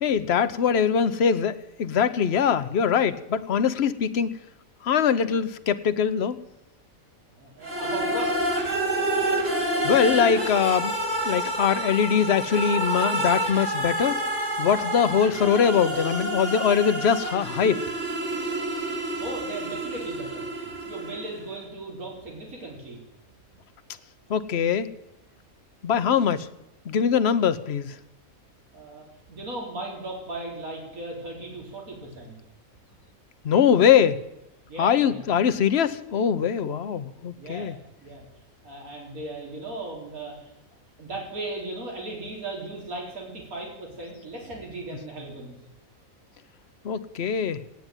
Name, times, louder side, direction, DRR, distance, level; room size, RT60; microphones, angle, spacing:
voice 1, 0.0-4.3 4.8-6.4 9.8-10.9 11.2-14.2 14.6-17.8 24.3-24.9 25.8-26.5 26.9-27.9 33.4-34.2 34.8-37.7 46.8-47.6, left 7 dB, 55° left, 12 dB, 1.0 m, -22 dB
voice 2, 7.3-8.5 19.2-20.5 20.9-23.0 28.7-32.4 34.7-35.2 37.4-37.7 38.0-38.3 38.6-40.5 41.0-45.6, right 2 dB, 80° right, -1 dB, 4.0 m, -37 dB
sound 1, 7.6-21.5, right 1 dB, 55° right, 2.9 m, -28 dB
16.5 x 9.4 x 9.0 m, 0.89 s
omnidirectional pair, 1.5 m